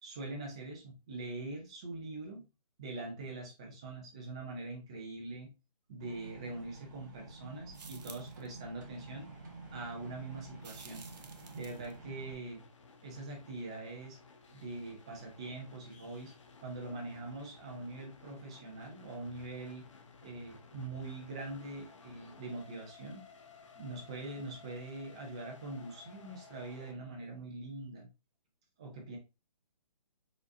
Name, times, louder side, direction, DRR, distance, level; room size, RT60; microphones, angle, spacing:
voice 1, 0.0-2.4 2.8-5.5 5.9-9.3 9.7-11.1 11.5-12.6 13.0-14.2 14.5-16.3 16.6-19.8 20.2-23.3 23.8-28.1 28.8-29.2, right 2 dB, 10° right, 0 dB, 0.5 m, -43 dB
sound 1, 6.0-12.3, right 3 dB, 30° right, 1.0 m, -50 dB
sound 2, 7.7-8.5 10.6-11.9, right 5 dB, 85° right, 0.9 m, -52 dB
sound 3, 8.8-26.9, left 4 dB, 50° left, 0.8 m, -57 dB
4.9 x 3.9 x 2.6 m, 0.26 s
hypercardioid pair, 170°, 20 cm